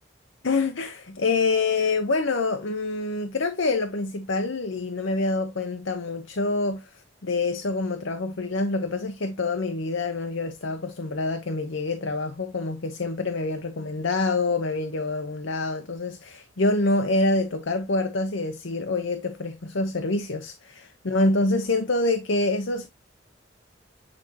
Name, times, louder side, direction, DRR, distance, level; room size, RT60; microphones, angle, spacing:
voice 1, 0.4-22.9, left 3 dB, 75° left, 0.8 m, -26 dB
8.8 x 4.3 x 2.9 m
head